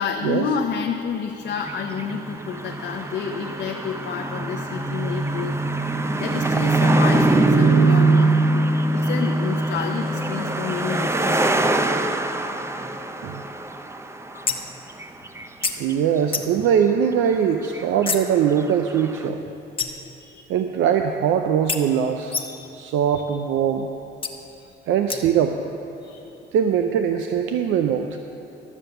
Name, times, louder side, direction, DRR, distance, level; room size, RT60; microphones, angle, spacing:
voice 1, 0.0-5.6 6.2-8.6 8.9-11.4 14.3-14.4 20.2-20.4 22.3-22.6 23.1-23.2 24.5-24.7 26.0-26.3, left 6 dB, 65° left, 2 dB, 0.7 m, -29 dB
sound 1, 1.5-14.4 14.9-15.6 15.9-16.0 17.6-18.0 18.6-19.2, right 2 dB, 15° right, 0.5 m, -22 dB
sound 2, 14.5-14.8 15.6-15.7 16.3-16.7 18.1-18.3 19.8-20.2 21.7-21.8 22.3-22.7 24.2-24.3 25.1-25.4, left 4 dB, 25° left, 0.9 m, -27 dB
voice 2, 15.8-19.5 20.5-22.4 22.7-23.9 24.9-25.6 26.5-28.2, right 8 dB, 85° right, 6 dB, 0.5 m, -21 dB
12.5 x 7.3 x 6.6 m, 2.9 s
cardioid pair, 90°, 20 cm